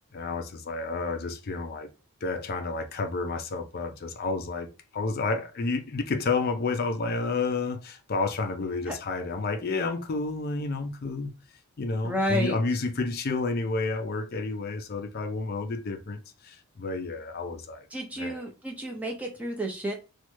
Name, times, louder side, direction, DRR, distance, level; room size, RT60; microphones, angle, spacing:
voice 1, 0.1-1.9 2.2-4.7 4.9-11.3 11.8-17.9 18.2-18.4, left 3 dB, 45° left, 0.4 m, -30 dB
voice 2, 12.0-12.6 17.9-19.9, equal, 5° right, 0.5 m, -31 dB
3.1 x 2.2 x 3.0 m
head